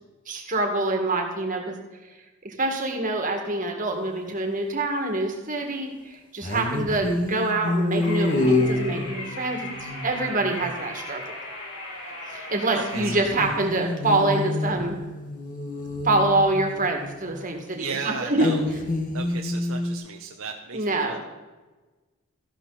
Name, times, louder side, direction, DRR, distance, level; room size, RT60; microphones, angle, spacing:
voice 1, 0.3-1.7 2.4-11.4 12.3-15.0 16.0-18.5 20.7-21.2, right 2 dB, 35° right, 3 dB, 2.0 m, -26 dB
sound 1, 3.9-4.0 6.4-10.7 12.9-17.5 18.3-20.0, left 2 dB, 35° left, 1.4 m, -28 dB
sound 2, 8.0-13.2, left 2 dB, 55° left, 4.5 m, -37 dB
voice 2, 12.7-13.1 17.7-18.6 19.1-21.2, right 5 dB, 70° right, 3 dB, 0.9 m, -35 dB
14.0 x 11.5 x 4.1 m, 1.2 s
head